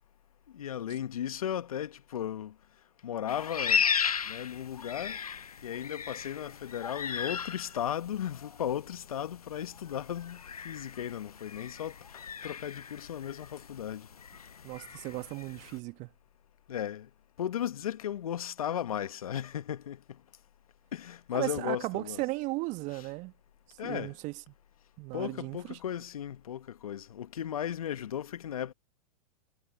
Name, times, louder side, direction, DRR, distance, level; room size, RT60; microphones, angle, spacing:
voice 1, 0.5-2.5 3.0-3.8 4.3-5.2 5.6-10.4 10.6-14.1 16.7-17.1 17.4-20.0 20.9-22.2 22.9-23.0 23.8-24.1 25.1-28.7, left 10 dB, 75° left, 1.5 m, -36 dB
sound 1, 3.3-15.8, left 6 dB, 90° left, 0.7 m, -36 dB
voice 2, 14.6-16.1 21.3-23.3 23.8-24.3 25.0-25.8, right 22 dB, 40° right, 1.6 m, -36 dB
hypercardioid pair, 105°, 19 cm